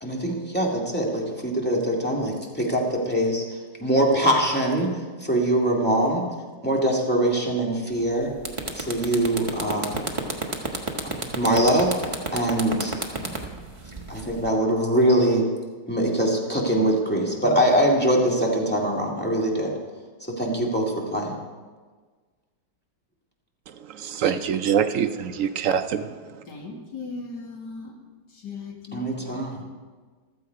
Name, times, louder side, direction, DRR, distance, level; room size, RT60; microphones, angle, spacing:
voice 1, 0.0-3.4 3.8-4.9 5.2-6.2 6.6-8.3 8.8-9.9 11.0-11.9 12.3-12.9 14.1-15.5 15.9-19.7 20.2-21.4 28.9-29.6, right 1 dB, 5° left, -2 dB, 2.1 m, -23 dB
sound 1, 7.9-8.1 8.4-14.5, right 3 dB, 20° right, 1.2 m, -30 dB
voice 2, 23.9-26.1, right 8 dB, 70° right, 9 dB, 0.7 m, -24 dB
voice 3, 26.5-27.9 28.4-29.7, left 4 dB, 70° left, 0 dB, 2.8 m, -38 dB
15.0 x 13.0 x 4.7 m, 1.4 s
omnidirectional pair, 1.9 m